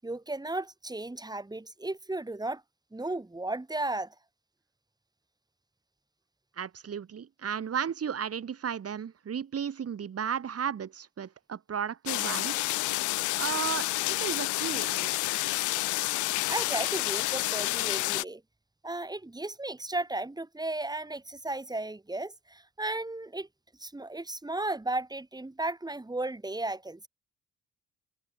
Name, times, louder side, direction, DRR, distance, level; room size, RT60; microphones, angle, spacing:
voice 1, 0.0-2.6 2.9-4.1 16.5-18.4 18.8-23.5 23.8-27.1, right 2 dB, 15° right, 6.4 m, -35 dB
voice 2, 6.6-12.7 13.3-15.3, right 7 dB, 50° right, 5.4 m, -34 dB
sound 1, 12.1-18.2, left 19 dB, 80° left, 0.5 m, -29 dB
cardioid pair, 90°, 30 cm